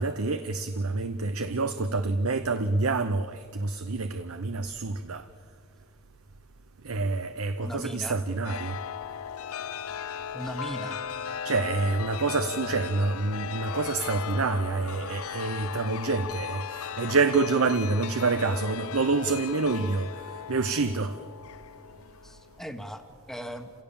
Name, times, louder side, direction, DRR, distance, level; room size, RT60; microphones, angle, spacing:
voice 1, 0.0-5.3 6.8-8.8 11.4-20.1 20.5-21.2, right 3 dB, 75° right, 0.8 m, -27 dB
voice 2, 7.6-8.2 10.3-11.1 22.2-23.7, equal, ahead, 1.4 m, -38 dB
Chime, 8.4-22.7, left 8 dB, 70° left, 0.6 m, -37 dB
29.5 x 17.0 x 7.1 m
head